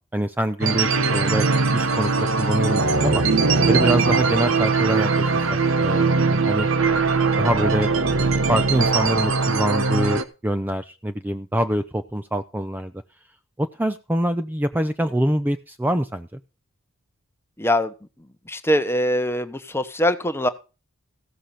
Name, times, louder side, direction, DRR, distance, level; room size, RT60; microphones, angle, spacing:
voice 1, 0.1-1.5 1.7-3.2 3.7-6.7 7.4-7.9 8.5-12.9 13.6-16.4, right 1 dB, 10° right, 9 dB, 0.5 m, -25 dB
sound 1, 0.6-10.2, right 4 dB, 70° right, 1.1 m, -20 dB
voice 2, 3.5-3.8 17.6-17.9 18.5-20.5, equal, 10° left, 10 dB, 1.0 m, -23 dB
15.5 x 6.5 x 5.7 m, 0.32 s
head